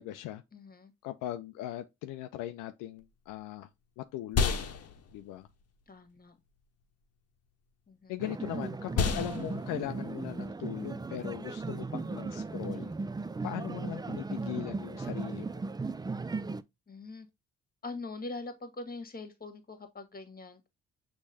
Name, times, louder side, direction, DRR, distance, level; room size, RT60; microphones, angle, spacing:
voice 1, 0.0-0.4 1.0-3.7 4.0-4.7 5.1-5.5 8.1-12.9 13.4-15.6, left 13 dB, 75° left, 0.5 m, -39 dB
voice 2, 0.5-0.9 5.9-6.4 7.9-8.2 16.9-17.3 17.8-20.7, left 3 dB, 30° left, 1.6 m, -43 dB
sound 1, 3.0-12.6, left 5 dB, 50° left, 1.0 m, -36 dB
sound 2, 8.2-16.6, right 3 dB, 15° right, 0.4 m, -37 dB
6.3 x 3.1 x 2.7 m
hypercardioid pair, 45°, 32 cm